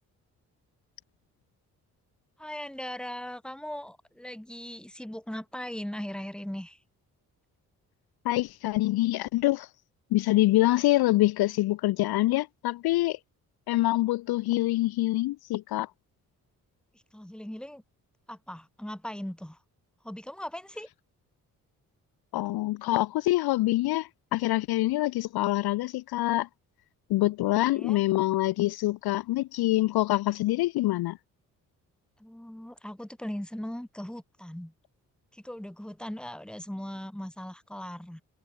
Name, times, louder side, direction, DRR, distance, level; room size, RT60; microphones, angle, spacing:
voice 1, 2.4-6.8 17.1-17.8 18.3-19.6 20.0-20.9 27.6-28.0 32.2-34.7 35.3-38.2, equal, ahead, 1.7 m, -39 dB
voice 2, 8.2-9.7 10.1-13.2 13.7-15.9 22.3-26.5 27.1-31.2, left 17 dB, 55° left, 0.7 m, -25 dB
figure-of-eight pair, 40°, 44 cm